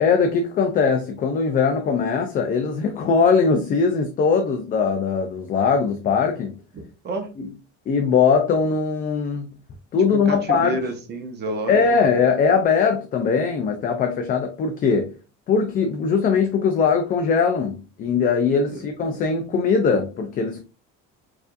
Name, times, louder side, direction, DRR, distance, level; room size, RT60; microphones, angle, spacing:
voice 1, 0.0-6.5 7.4-7.5 7.9-9.5 9.9-10.8 11.7-15.1 15.5-20.6, left 5 dB, 30° left, 0.3 m, -20 dB
voice 2, 6.7-7.3 10.1-11.8 18.7-18.8, right 2 dB, 35° right, 0.8 m, -30 dB
4.6 x 2.6 x 2.5 m
cardioid pair, 175°, 31 cm